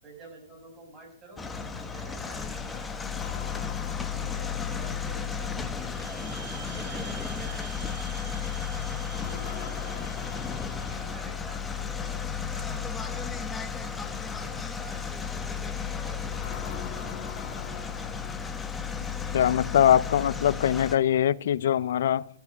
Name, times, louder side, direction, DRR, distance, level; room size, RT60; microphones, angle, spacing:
voice 1, 0.0-3.6 4.2-7.9 8.8-10.4 10.8-12.2 12.5-17.3, right 3 dB, 20° right, 7.8 m, -49 dB
sound 1, 1.4-21.0, left 6 dB, 10° left, 1.3 m, -34 dB
sound 2, 3.1-5.5 9.1-11.6 16.3-18.9, left 9 dB, 35° left, 2.0 m, -44 dB
sound 3, 5.8-11.1, right 8 dB, 70° right, 1.0 m, -47 dB
voice 2, 19.3-22.3, left 10 dB, 60° left, 0.7 m, -22 dB
14.0 x 8.0 x 9.4 m
hypercardioid pair, 135°, 0 cm